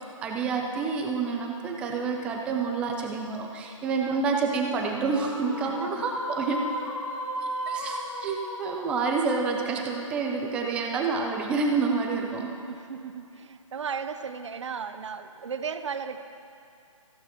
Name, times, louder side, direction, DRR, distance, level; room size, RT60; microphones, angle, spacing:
voice 1, 0.2-6.6 7.4-12.6, right 4 dB, 5° right, 1 dB, 0.4 m, -28 dB
sound 1, 5.0-10.5, equal, 75° left, 2.6 m, -36 dB
voice 2, 5.6-6.1 12.7-16.2, right 6 dB, 60° right, 10 dB, 0.7 m, -35 dB
17.0 x 14.5 x 2.9 m, 2.5 s
hypercardioid pair, 150°, 17 cm